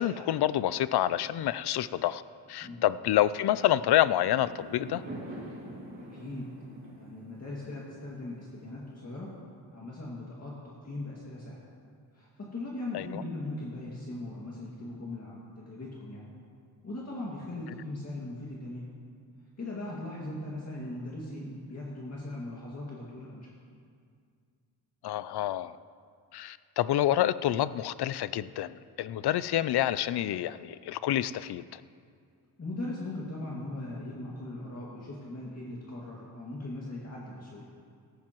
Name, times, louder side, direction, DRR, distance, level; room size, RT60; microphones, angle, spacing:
voice 1, 0.0-2.2 2.5-5.0 12.9-13.2 25.0-25.8 26.3-31.8, left 12 dB, 70° left, 16 dB, 0.5 m, -28 dB
Fireworks, 4.4-8.8, right 1 dB, 30° right, 3.2 m, -45 dB
voice 2, 6.0-6.5 7.0-9.3 9.7-11.6 12.1-16.3 16.8-18.9 19.6-23.5 32.6-37.7, left 2 dB, 40° left, -5 dB, 2.1 m, -39 dB
18.0 x 14.0 x 3.0 m, 2.2 s
wide cardioid pair, 135°, 40 cm